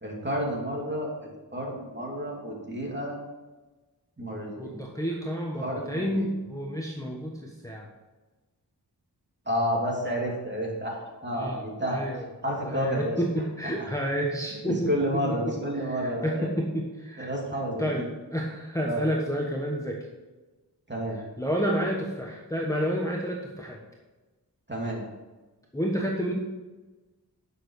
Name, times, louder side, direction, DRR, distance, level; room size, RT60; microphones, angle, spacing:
voice 1, 0.0-3.2 4.2-4.8 5.6-6.3 9.5-11.0 11.2-12.0 12.4-13.2 14.6-16.5 17.2-18.0 18.8-19.1 20.9-21.2 24.7-25.1, equal, 25° right, -2 dB, 2.9 m, -30 dB
voice 2, 4.6-7.9 11.3-12.2 12.6-14.9 15.4-17.3 17.8-18.0 18.3-20.0 21.4-23.8 25.7-26.3, equal, 10° left, -2 dB, 1.3 m, -30 dB
9.8 x 6.6 x 4.8 m, 1.2 s
wide cardioid pair, 50°, 39 cm